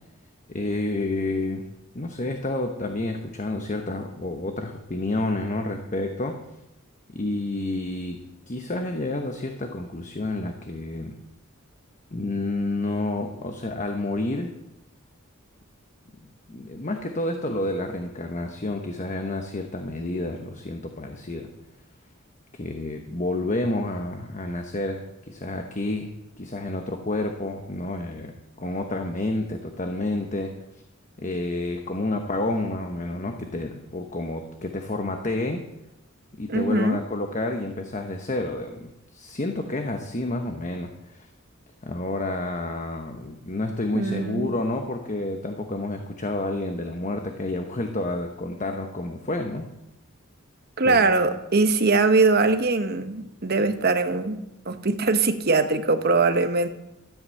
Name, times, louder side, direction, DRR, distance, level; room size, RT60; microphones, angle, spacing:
voice 1, 0.5-1.6 1.9-6.4 7.1-8.2 8.5-11.1 12.1-14.5 16.5-21.5 22.5-26.1 26.4-28.3 28.6-30.5 31.2-35.7 36.4-41.3 41.8-49.7 50.8-51.0, left 2 dB, 35° left, 4 dB, 1.0 m, -29 dB
voice 2, 36.5-37.0 43.9-44.5 50.8-56.7, right 3 dB, 50° right, 9 dB, 1.0 m, -22 dB
13.5 x 8.0 x 7.7 m, 0.90 s
head